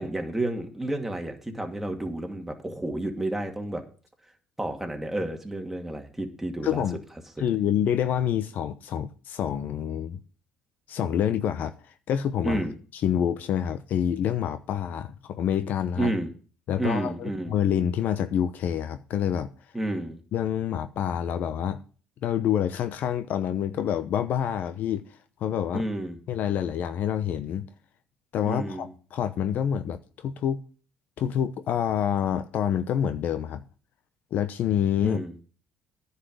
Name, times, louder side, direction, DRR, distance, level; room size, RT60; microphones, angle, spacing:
voice 1, 0.0-3.8 4.6-6.8 12.4-12.7 16.0-16.3 16.8-17.6 19.7-20.2 25.7-26.2 28.4-28.9 35.0-35.3, right 1 dB, 5° right, 2.3 m, -30 dB
voice 2, 6.6-7.0 7.4-10.2 10.9-11.7 12.1-12.6 13.0-16.1 16.7-19.5 20.3-21.8 22.2-25.0 25.4-25.9 26.3-27.7 28.3-30.6 31.2-33.6 34.3-35.2, left 9 dB, 65° left, 0.8 m, -27 dB
9.9 x 5.7 x 7.9 m
supercardioid pair, 80°, 3 cm